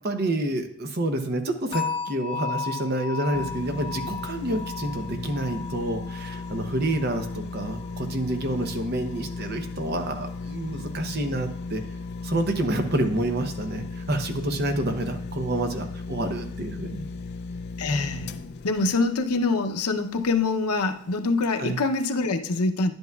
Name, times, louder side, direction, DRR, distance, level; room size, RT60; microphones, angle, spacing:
voice 1, 0.0-11.8 12.2-17.1 21.5-21.8, right 1 dB, 45° right, 6 dB, 0.8 m, -28 dB
sound 1, 1.7-8.8 9.1-9.5 10.0-10.1, left 5 dB, 25° left, 1.3 m, -36 dB
sound 2, 3.3-20.5 21.0-21.1, left 4 dB, 50° left, 0.4 m, -36 dB
voice 2, 17.8-18.3 18.6-22.9, left 3 dB, 90° left, 6 dB, 0.7 m, -25 dB
10.5 x 8.0 x 2.3 m, 0.75 s
head